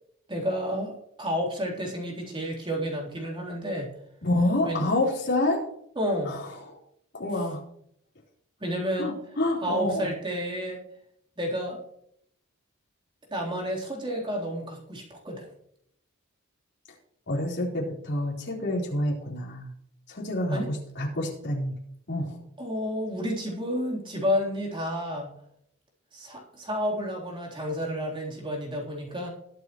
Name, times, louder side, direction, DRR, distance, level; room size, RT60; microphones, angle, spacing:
voice 1, 0.3-3.9 4.6-4.9 6.0-6.4 8.6-9.1 9.6-10.8 11.4-11.8 13.3-15.5 20.5-20.7 22.6-25.3 26.1-29.3, equal, 25° right, -2 dB, 3.6 m, -30 dB
voice 2, 4.2-5.6 6.3-6.5 7.1-7.6 9.0-10.1 17.3-19.7 20.1-21.8 22.1-22.4, left 1 dB, 50° left, -4 dB, 4.2 m, -27 dB
21.0 x 8.1 x 3.1 m, 0.72 s
head